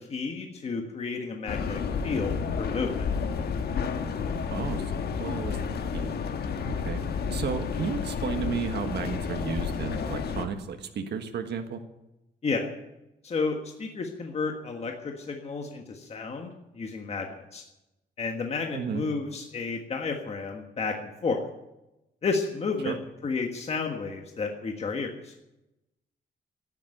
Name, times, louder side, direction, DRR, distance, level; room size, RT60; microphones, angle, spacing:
voice 1, 0.0-3.1 12.4-12.7 13.2-16.5 16.7-17.6 18.2-21.4 22.2-22.9 23.2-25.3, left 4 dB, 35° left, 3 dB, 1.5 m, -31 dB
sound 1, 1.5-10.5, left 6 dB, 65° left, 1.3 m, -31 dB
voice 2, 4.5-4.9 5.2-5.6 5.9-6.1 6.6-11.8 18.7-19.0 22.8-23.0, right 6 dB, 75° right, 6 dB, 1.5 m, -33 dB
13.0 x 10.5 x 9.1 m, 0.93 s
wide cardioid pair, 165°, 18 cm